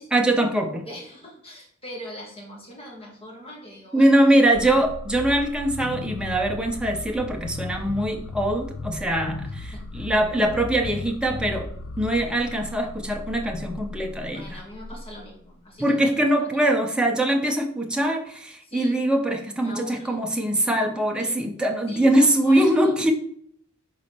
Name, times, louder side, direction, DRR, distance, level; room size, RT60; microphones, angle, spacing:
voice 1, 0.1-0.8 3.9-11.7 12.0-14.6 15.8-23.1, right 1 dB, 5° right, 2 dB, 0.8 m, -22 dB
voice 2, 0.8-4.2 9.6-9.8 14.3-16.0 16.4-16.8 18.6-19.0 19.6-20.2 21.2-21.4 21.9-22.7, equal, 25° left, -1 dB, 1.9 m, -41 dB
sound 1, 4.5-15.4, left 2 dB, 60° left, 0.5 m, -36 dB
4.8 x 4.2 x 5.8 m, 0.66 s
head